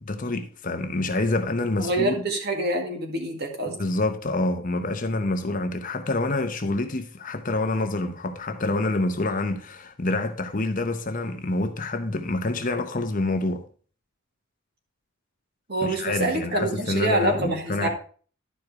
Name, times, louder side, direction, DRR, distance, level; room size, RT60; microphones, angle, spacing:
voice 1, 0.0-2.2 3.7-13.6 15.8-17.9, left 2 dB, 35° left, 0.8 m, -27 dB
voice 2, 1.8-3.8 15.7-17.9, right 2 dB, 45° right, 1.8 m, -26 dB
11.0 x 4.9 x 4.6 m
head